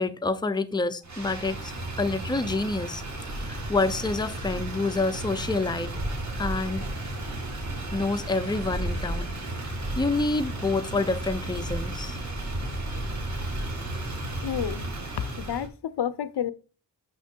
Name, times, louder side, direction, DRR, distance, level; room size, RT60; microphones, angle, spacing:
voice 1, 0.0-1.7 2.0-3.0 3.4-5.9 6.4-6.9 7.9-9.3 10.0-12.2, left 3 dB, 10° left, 0.5 m, -27 dB
Motor vehicle (road), 1.0-15.7, right 1 dB, 45° right, 2.1 m, -33 dB
voice 2, 14.4-14.9 15.2-16.5, left 9 dB, 75° left, 0.6 m, -30 dB
6.0 x 5.9 x 4.4 m
wide cardioid pair, 90°, 41 cm